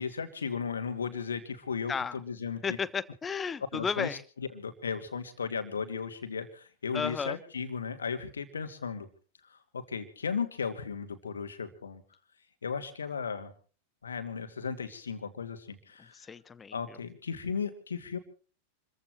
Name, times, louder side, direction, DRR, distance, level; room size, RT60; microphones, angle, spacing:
voice 1, 0.0-2.8 3.7-9.1 9.5-12.0 12.6-13.5 14.0-16.1 16.7-18.2, left 6 dB, 70° left, 9 dB, 2.4 m, -36 dB
voice 2, 2.6-4.2 6.9-7.4 16.1-17.0, left 6 dB, 20° left, 18 dB, 0.8 m, -33 dB
28.5 x 15.0 x 3.2 m, 0.39 s
figure-of-eight pair, 90°, 0 cm